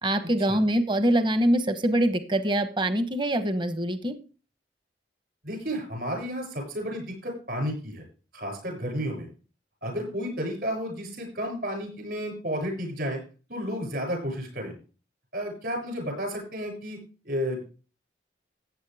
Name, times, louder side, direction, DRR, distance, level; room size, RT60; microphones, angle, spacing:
voice 1, 0.0-4.1, right 1 dB, 25° right, 10 dB, 1.1 m, -24 dB
voice 2, 5.4-8.0 8.3-9.3 9.8-13.2 13.5-14.7 15.3-17.0 17.2-17.6, equal, 55° right, 2 dB, 7.2 m, -32 dB
15.0 x 9.0 x 3.5 m, 0.36 s
head